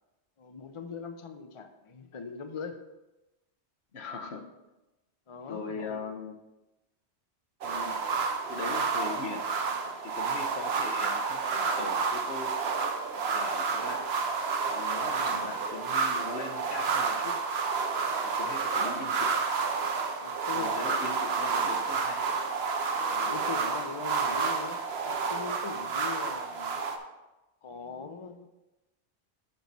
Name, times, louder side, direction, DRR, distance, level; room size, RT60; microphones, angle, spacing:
voice 1, 0.4-2.8 5.3-6.0 15.1-15.5 20.2-21.0 23.1-24.8 25.0-26.8 27.6-28.5, left 5 dB, 40° left, 7 dB, 0.5 m, -41 dB
voice 2, 3.9-4.5 5.5-6.4 7.6-8.0 8.5-9.4 10.0-12.6 13.1-14.0 14.7-17.4 18.2-19.3 20.5-22.2, left 4 dB, 70° left, 5 dB, 1.1 m, -40 dB
sound 1, 7.6-27.0, right 5 dB, 65° right, 1.0 m, -30 dB
9.7 x 4.7 x 4.1 m, 1.0 s
omnidirectional pair, 1.2 m